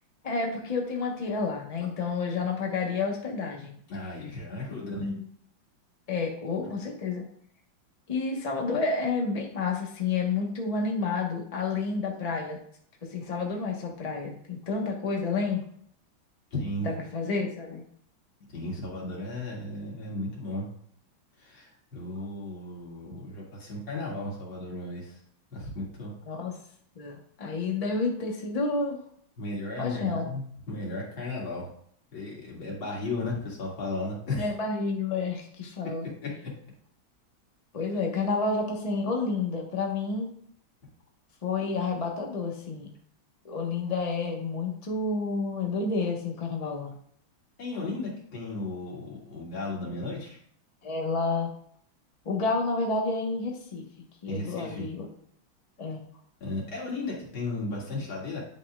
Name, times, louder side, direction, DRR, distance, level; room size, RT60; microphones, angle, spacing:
voice 1, 0.2-3.7 4.7-5.2 6.1-7.2 8.1-12.6 13.1-15.6 16.8-17.8 26.2-26.5 26.9-29.0 29.8-30.3 34.3-36.1 37.7-40.3 41.4-42.9 43.4-46.9 50.8-51.5 52.2-53.8 54.2-55.1 55.8-56.0, left 4 dB, 25° left, 0 dB, 1.0 m, -30 dB
voice 2, 3.9-5.1 16.5-16.9 18.5-20.7 21.4-25.2 25.5-26.1 29.4-31.7 32.1-34.4 36.2-36.5 47.6-50.4 54.3-54.8 56.4-58.4, left 2 dB, 90° left, -4 dB, 3.1 m, -35 dB
10.5 x 5.5 x 2.4 m, 0.63 s
omnidirectional pair, 2.2 m